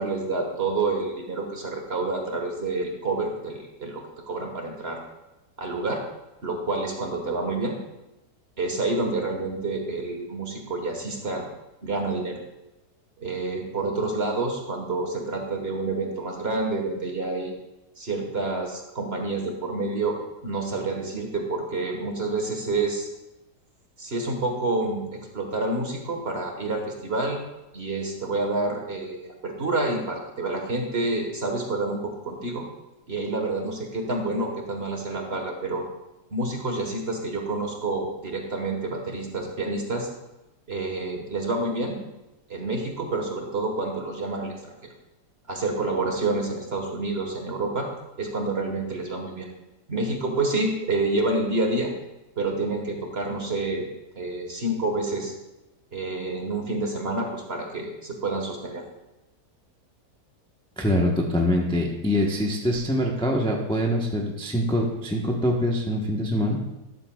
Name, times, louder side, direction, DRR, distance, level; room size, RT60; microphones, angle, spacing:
voice 1, 0.0-5.0 5.6-6.0 6.4-7.8 8.6-11.4 11.8-12.4 13.2-17.5 18.0-20.2 20.4-23.1 24.0-27.4 27.7-32.6 33.1-35.8 36.3-40.1 40.7-42.0 42.5-44.7 45.5-47.9 48.2-49.5 49.9-51.9 52.4-53.8 54.1-55.3 55.9-58.8, right 2 dB, 40° right, 2 dB, 1.5 m, -28 dB
voice 2, 60.8-66.6, left 1 dB, 5° left, -1 dB, 0.8 m, -24 dB
12.5 x 11.5 x 2.4 m, 0.96 s
omnidirectional pair, 1.9 m